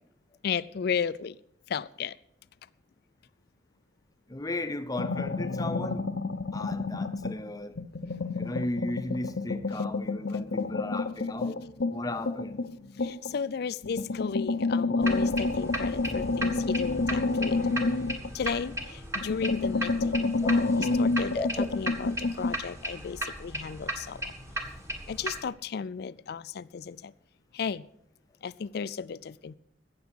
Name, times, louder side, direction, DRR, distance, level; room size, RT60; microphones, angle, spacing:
voice 1, 0.4-1.4 1.7-2.2 9.7-9.8 10.3-10.4 13.0-17.8 18.3-24.3 25.1-27.1 27.5-27.8 28.4-29.6, left 6 dB, 60° left, 0.4 m, -34 dB
voice 2, 4.3-6.1 6.5-7.8 8.3-11.6 11.9-12.6 20.4-20.7 20.9-21.0 21.4-21.7, left 2 dB, 20° left, 0.7 m, -35 dB
sound 1, 5.0-7.4 7.8-13.4 13.8-18.9 19.2-22.6, left 3 dB, 85° left, 0.7 m, -29 dB
sound 2, 15.0-25.4, right 1 dB, 15° right, 1.7 m, -36 dB
16.5 x 6.9 x 6.2 m
head